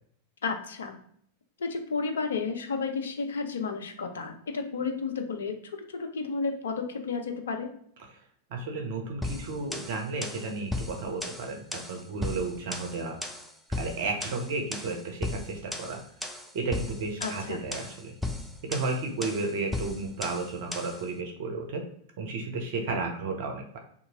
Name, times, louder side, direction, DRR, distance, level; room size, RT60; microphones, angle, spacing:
voice 1, 0.4-1.0 1.6-5.5 5.9-7.7 17.2-17.6, left 4 dB, 65° left, 4 dB, 0.5 m, -32 dB
voice 2, 8.5-13.2 13.8-16.0 16.3-18.1 18.7-21.8 22.2-23.8, right 3 dB, 50° right, 3 dB, 0.5 m, -33 dB
sound 1, 9.2-21.0, left 2 dB, ahead, 0.3 m, -36 dB
2.6 x 2.4 x 2.8 m, 0.65 s
figure-of-eight pair, 90°, 0 cm